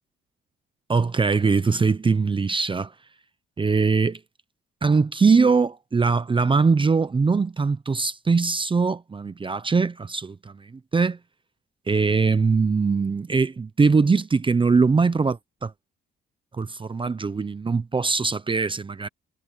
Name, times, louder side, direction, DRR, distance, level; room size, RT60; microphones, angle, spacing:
voice 1, 0.9-2.9 3.6-4.2 4.8-11.2 11.9-15.7 16.5-19.1, right 4 dB, 25° right, 0.9 m, -22 dB
cardioid pair, 90°, 20 cm